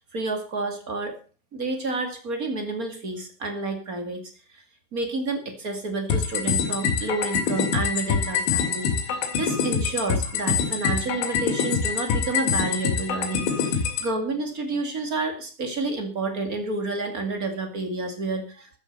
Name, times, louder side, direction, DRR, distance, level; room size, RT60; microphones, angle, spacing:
voice 1, 0.1-1.1 1.5-4.2 4.9-8.9 9.4-18.7, right 3 dB, 35° right, 5 dB, 1.4 m, -29 dB
sound 1, 6.1-14.1, left 6 dB, 75° left, 4.7 m, -25 dB
14.0 x 9.2 x 6.7 m, 0.38 s
omnidirectional pair, 5.3 m